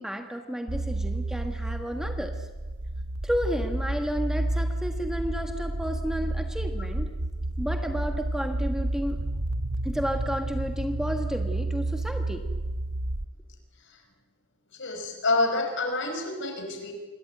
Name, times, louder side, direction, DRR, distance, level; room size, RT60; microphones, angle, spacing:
voice 1, 0.0-2.5 3.2-7.1 7.6-9.2 9.8-12.4, equal, 5° right, 4 dB, 1.5 m, -32 dB
sound 1, 0.7-13.3, right 1 dB, 85° right, 1.2 m, -30 dB
voice 2, 14.8-16.9, left 2 dB, 55° left, 5 dB, 5.5 m, -27 dB
27.0 x 22.0 x 9.4 m, 1.2 s
head